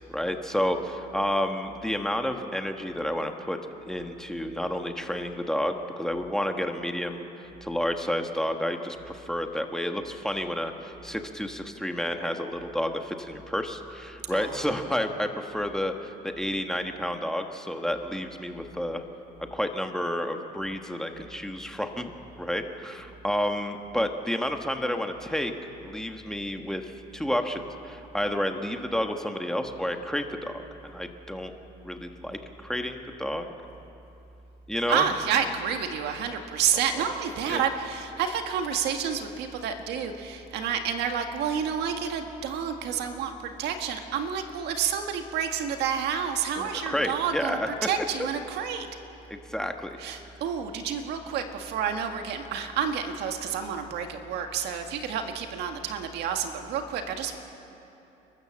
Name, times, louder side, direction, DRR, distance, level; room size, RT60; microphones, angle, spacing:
voice 1, 0.1-3.6 3.9-7.2 7.6-19.0 19.5-22.1 22.4-25.5 25.8-31.5 31.8-33.5 34.7-35.1 36.9-37.0 37.5-37.6 46.6-47.7 48.2-48.3 49.3-50.0, equal, 5° left, 5 dB, 1.5 m, -30 dB
voice 2, 14.3-14.6 34.9-48.9 50.0-57.4, right 7 dB, 80° right, 5 dB, 1.7 m, -29 dB
30.0 x 13.0 x 7.6 m, 2.9 s
cardioid pair, 110°, 17 cm